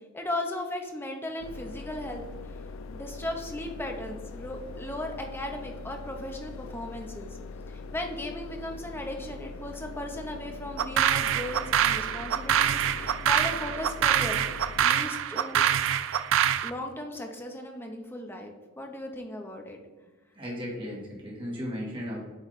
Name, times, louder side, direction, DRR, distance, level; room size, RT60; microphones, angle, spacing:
voice 1, 0.1-2.2 2.9-7.4 7.7-14.4 14.8-15.6 16.6-19.8, left 1 dB, 10° left, 2 dB, 0.7 m, -36 dB
sound 1, 1.4-14.9, left 4 dB, 70° left, 0.3 m, -42 dB
sound 2, 10.8-16.7, right 9 dB, 65° right, 0.3 m, -25 dB
voice 2, 20.4-22.2, equal, 25° right, -4 dB, 1.9 m, -35 dB
8.0 x 3.2 x 4.0 m, 1.3 s
head